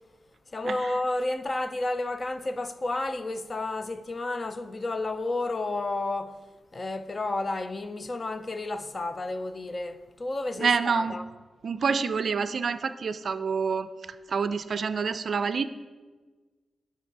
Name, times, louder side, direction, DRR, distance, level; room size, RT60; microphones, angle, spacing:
voice 1, 0.5-6.4 6.7-11.2, left 2 dB, 30° left, 0.4 m, -31 dB
voice 2, 10.6-11.2 11.6-13.9 14.3-15.7, right 5 dB, 55° right, 0.4 m, -27 dB
9.7 x 5.8 x 4.6 m
wide cardioid pair, 125°, 0 cm